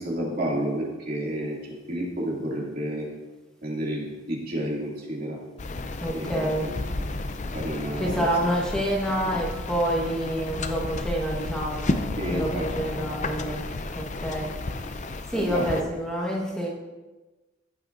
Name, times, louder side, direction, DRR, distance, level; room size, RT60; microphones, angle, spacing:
voice 1, 0.0-3.1 3.6-5.4 6.1-7.1 7.5-8.3 9.3-9.4 12.2-12.9 15.3-15.9, right 1 dB, 50° right, -4 dB, 2.5 m, -31 dB
sound 1, 5.6-15.8, left 2 dB, 40° left, 0.5 m, -32 dB
voice 2, 6.0-6.7 8.0-11.9 12.3-13.6 13.9-14.5 15.3-16.7, right 1 dB, 5° left, -3 dB, 1.3 m, -27 dB
14.0 x 8.9 x 2.6 m, 1.2 s
head